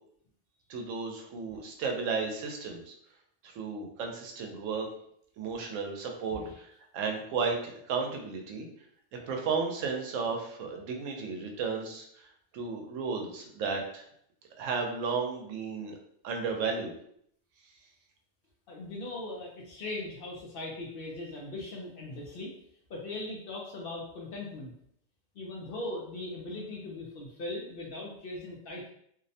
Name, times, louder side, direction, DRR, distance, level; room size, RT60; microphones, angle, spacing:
voice 1, 0.7-2.9 3.4-4.9 5.4-6.4 6.9-8.7 9.1-12.3 12.5-14.0 14.6-16.0 16.2-16.9, right 5 dB, 90° right, 2 dB, 0.9 m, -33 dB
voice 2, 18.7-22.5 22.9-24.7 25.4-28.9, left 2 dB, 60° left, -1 dB, 0.6 m, -39 dB
2.6 x 2.0 x 2.6 m, 0.68 s
omnidirectional pair, 1.3 m